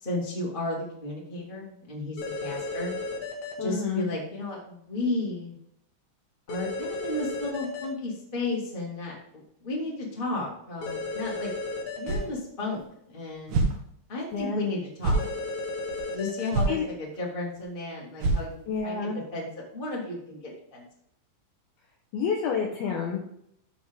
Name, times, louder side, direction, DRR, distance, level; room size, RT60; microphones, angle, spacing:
voice 1, 0.0-2.9 3.6-5.5 6.5-11.5 12.0-13.6 14.1-15.2 16.1-19.5 19.7-20.8, left 2 dB, 30° left, -4 dB, 1.0 m, -33 dB
sound 1, 2.2-3.5 6.5-7.8 10.8-12.2 15.1-16.5, left 3 dB, 70° left, 1.9 m, -34 dB
voice 2, 3.6-4.1 14.3-14.6 16.7-16.9 18.7-19.2 22.1-23.2, left 6 dB, 85° left, 0 dB, 2.2 m, -29 dB
sound 2, 12.1-12.3 12.7-12.8 13.5-13.8 14.3-14.4 15.0-15.3 15.9-16.0 16.5-16.8 17.1-17.2 17.6-17.7 18.2-18.8, right 2 dB, 75° right, 1.9 m, -26 dB
14.5 x 4.8 x 3.7 m, 0.72 s
omnidirectional pair, 5.8 m